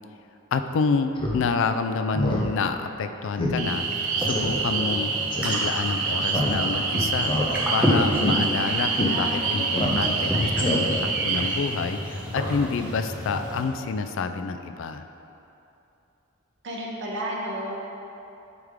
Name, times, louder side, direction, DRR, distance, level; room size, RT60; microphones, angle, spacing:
voice 1, 0.5-3.9 4.2-5.1 5.4-7.4 7.7-15.0, left 4 dB, 65° left, 8 dB, 0.3 m, -28 dB
Speech synthesizer, 1.2-1.4 1.7-1.8 2.1-2.5 2.8-2.9 3.4-3.6 3.9-4.0 4.3-4.5 5.3-5.6 6.3-6.8 7.2-7.8 8.1-8.3 9.0-9.1 9.7-10.2 10.6-11.1, left 1 dB, 25° left, 0.6 m, -26 dB
sound 1, 3.6-13.7, equal, 5° right, 0.7 m, -30 dB
sound 2, 3.6-11.6, right 4 dB, 75° right, 0.8 m, -27 dB
voice 2, 4.3-4.8 8.9-9.7 10.0-10.9 16.6-17.8, right 1 dB, 55° right, -3 dB, 1.0 m, -34 dB
9.5 x 3.5 x 3.6 m, 2.8 s
head